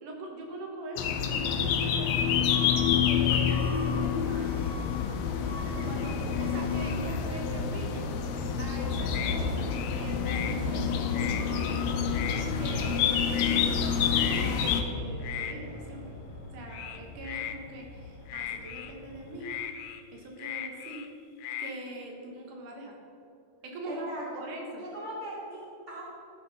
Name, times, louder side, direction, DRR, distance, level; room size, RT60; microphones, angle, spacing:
voice 1, 0.0-2.5 3.0-4.6 5.8-8.1 8.6-11.9 12.6-16.2 16.5-19.5 20.1-21.0 21.6-23.0 23.6-24.1 24.4-24.9, right 1 dB, 85° right, 0 dB, 2.9 m, -42 dB
sound 1, 1.0-14.8, left 7 dB, 75° left, 1.7 m, -28 dB
Truck / Alarm, 2.4-19.6, left 3 dB, 50° left, 0.5 m, -40 dB
sound 2, 9.1-9.4 9.7-10.6 10.9-11.8 12.1-12.4 12.7-13.0 13.3-13.6 14.1-14.8 15.2-15.5 16.7-17.6 18.3-18.9 19.4-21.1 21.4-21.7, left 10 dB, 90° left, 2.2 m, -37 dB
voice 2, 23.8-24.4 24.8-26.0, right 1 dB, 15° right, -7 dB, 2.6 m, -39 dB
14.0 x 7.8 x 4.0 m, 2.5 s
omnidirectional pair, 3.6 m